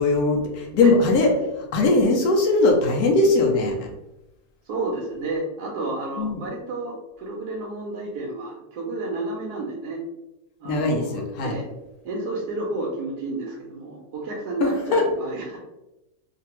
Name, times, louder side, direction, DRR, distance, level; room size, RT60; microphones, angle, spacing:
voice 1, 0.0-3.9 6.2-6.4 10.6-11.6 14.6-15.1, left 2 dB, 75° left, 1 dB, 1.1 m, -20 dB
voice 2, 4.7-10.0 10.6-11.7 12.0-15.6, right 2 dB, 75° right, -2 dB, 1.1 m, -31 dB
3.2 x 2.2 x 2.8 m, 0.96 s
omnidirectional pair, 1.7 m